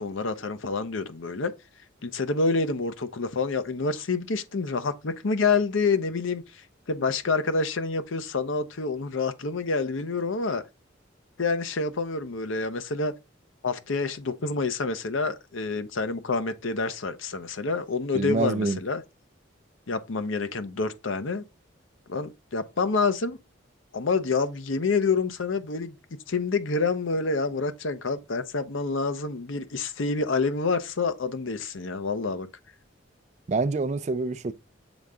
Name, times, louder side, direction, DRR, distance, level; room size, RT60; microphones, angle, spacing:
voice 1, 0.0-1.5 2.0-10.6 11.4-13.1 13.6-19.0 19.9-21.4 22.1-23.4 23.9-26.0 26.3-32.5, left 4 dB, 75° left, 0.8 m, -27 dB
voice 2, 18.1-18.8 33.5-34.5, right 3 dB, 35° right, 0.4 m, -26 dB
7.1 x 3.8 x 3.5 m
head